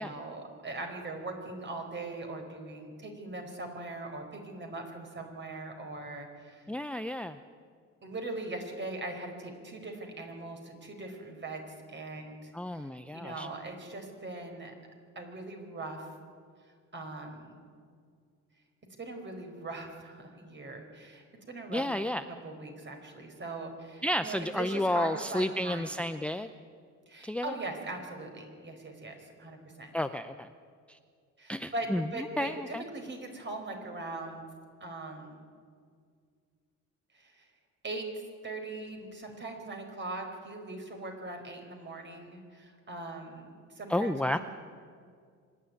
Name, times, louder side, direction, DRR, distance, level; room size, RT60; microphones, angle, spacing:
voice 1, 0.0-6.7 8.0-14.7 15.1-16.1 16.6-17.6 19.0-21.8 22.3-25.9 27.1-29.9 31.4-34.4 34.8-35.4 37.1-37.5 37.8-44.4, right 2 dB, 35° right, 4 dB, 4.7 m, -41 dB
voice 2, 6.7-7.4 12.5-13.5 21.7-22.2 24.0-26.5 27.2-27.5 29.9-30.5 30.9-31.0 31.5-32.1 32.4-32.8 43.9-44.4, left 1 dB, 5° left, 10 dB, 0.6 m, -31 dB
25.0 x 11.0 x 9.7 m, 2.1 s
cardioid pair, 90°, 30 cm